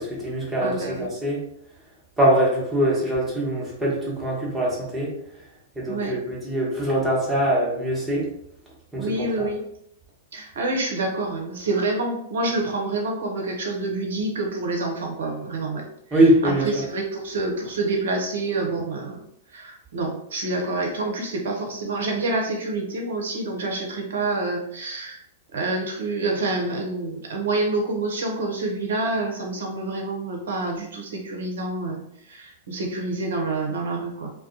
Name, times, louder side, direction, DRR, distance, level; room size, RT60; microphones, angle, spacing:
voice 1, 0.0-1.4 2.2-5.1 5.8-8.3 8.9-9.5 16.1-16.6, right 1 dB, 5° right, -6 dB, 1.0 m, -23 dB
voice 2, 0.6-1.1 5.9-6.2 9.0-9.6 10.3-25.2 25.5-32.0 32.3-34.3, right 2 dB, 65° right, 1 dB, 0.6 m, -27 dB
2.3 x 2.2 x 2.6 m, 0.75 s
figure-of-eight pair, 105°, 0 cm